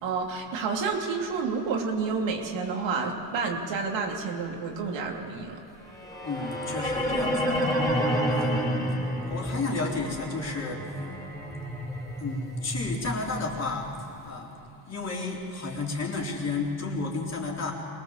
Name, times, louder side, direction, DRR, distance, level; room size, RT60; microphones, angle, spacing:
voice 1, 0.0-5.6, right 4 dB, 65° right, 1 dB, 2.9 m, -29 dB
sound 1, 5.9-14.0, equal, 10° left, 5.1 m, -30 dB
voice 2, 6.2-7.6 8.3-8.8 9.3-10.8 12.2-13.9 14.2-14.5 14.9-17.7, left 3 dB, 30° left, -2 dB, 4.0 m, -32 dB
23.5 x 19.5 x 7.3 m, 2.7 s
cardioid pair, 110°, 49 cm